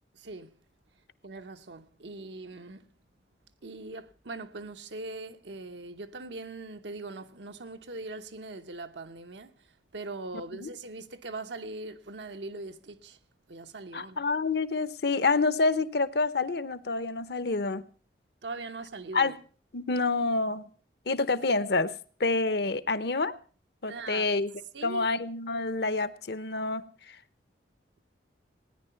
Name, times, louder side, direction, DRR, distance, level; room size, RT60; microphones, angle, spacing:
voice 1, 0.1-0.6 1.2-2.9 3.6-9.5 9.9-13.2 13.5-14.3 18.4-19.4 23.9-24.3 24.7-25.1, right 3 dB, 75° right, 0.9 m, -41 dB
voice 2, 13.9-17.8 19.1-19.3 19.7-20.7 21.1-21.9 22.2-23.3 23.8-24.5 24.8-26.8, left 3 dB, 60° left, 0.8 m, -27 dB
17.5 x 10.0 x 5.7 m
head